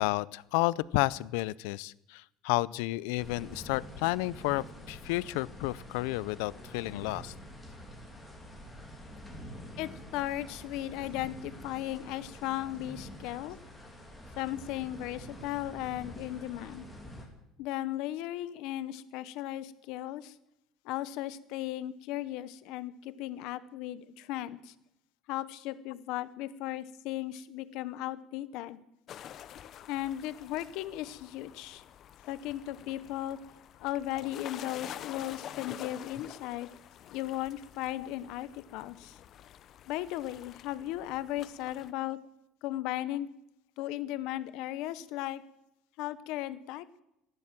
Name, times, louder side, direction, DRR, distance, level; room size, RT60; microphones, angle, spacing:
voice 1, 0.0-7.3 38.0-38.1, left 20 dB, 85° left, 20 dB, 0.5 m, -31 dB
sound 1, 3.2-17.2, equal, ahead, 2.6 m, -47 dB
voice 2, 9.8-13.6 14.4-16.8 17.6-20.3 20.8-24.7 25.3-28.8 29.9-31.8 32.3-33.4 33.8-36.7 37.1-39.2 39.9-42.2 42.6-43.3 43.8-45.4 46.0-46.8, left 14 dB, 60° left, 14 dB, 0.9 m, -36 dB
sound 2, 29.1-41.9, left 10 dB, 35° left, 0.7 m, -48 dB
15.0 x 11.5 x 7.5 m, 0.85 s
cardioid pair, 170°, 0 cm